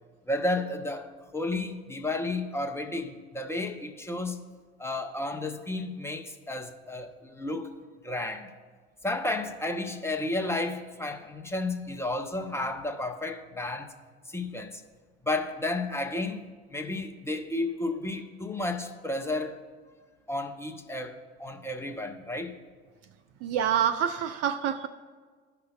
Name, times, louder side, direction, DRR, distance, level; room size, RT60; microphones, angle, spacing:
voice 1, 0.3-4.5 4.8-7.7 8.0-8.5 9.0-13.9 14.3-14.8 15.2-16.4 16.7-19.6 20.3-22.6, left 2 dB, 10° left, 0.9 m, -32 dB
voice 2, 23.4-24.9, right 9 dB, 45° right, 0.5 m, -27 dB
15.5 x 5.8 x 2.4 m
figure-of-eight pair, 60°, 34 cm